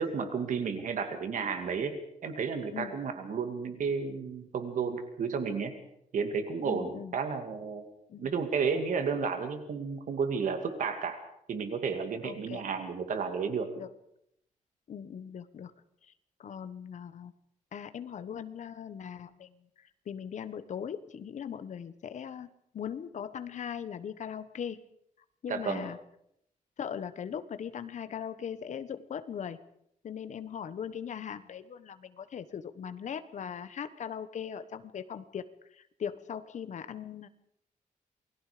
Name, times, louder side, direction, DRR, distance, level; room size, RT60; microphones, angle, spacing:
voice 1, 0.0-5.8 6.1-7.9 8.2-11.2 11.5-13.7 25.5-25.8, right 5 dB, 70° right, 6 dB, 2.3 m, -32 dB
voice 2, 6.6-7.1 8.1-8.3 12.2-12.6 13.8-13.9 14.9-15.7 16.1-16.2 16.4-17.3 17.7-24.8 25.4-26.0 26.8-29.6 30.0-35.4 35.7-37.3, left 8 dB, 60° left, 11 dB, 1.3 m, -39 dB
28.5 x 21.0 x 5.1 m, 0.76 s
wide cardioid pair, 160°, 14 cm